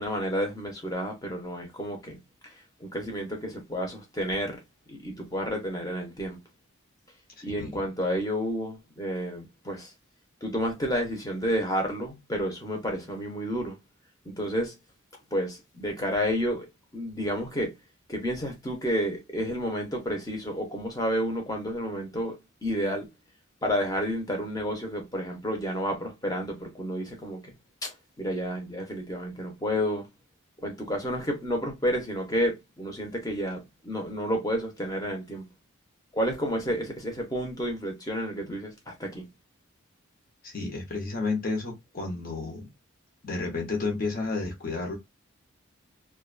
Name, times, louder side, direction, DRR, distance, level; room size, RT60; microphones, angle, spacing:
voice 1, 0.0-4.6 4.9-6.4 7.4-9.9 10.4-13.8 14.3-14.7 15.3-16.7 16.9-17.7 18.1-23.1 23.6-27.5 27.8-30.1 30.6-35.5 36.1-39.3, equal, 15° left, 0.7 m, -30 dB
voice 2, 7.4-7.7 40.4-42.7 43.2-45.0, left 3 dB, 40° left, 0.9 m, -31 dB
2.5 x 2.3 x 2.4 m
head